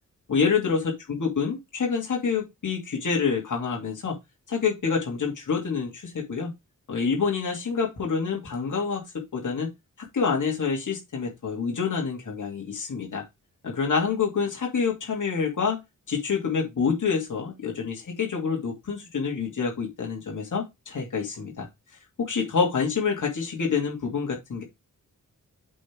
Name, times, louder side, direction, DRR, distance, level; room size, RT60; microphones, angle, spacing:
voice 1, 0.3-4.2 4.5-6.5 6.9-9.0 9.3-9.7 10.1-13.2 13.6-15.8 16.1-21.7 22.2-24.6, left 5 dB, 65° left, -1 dB, 2.7 m, -27 dB
8.3 x 3.7 x 4.6 m, 0.21 s
wide cardioid pair, 125°, 33 cm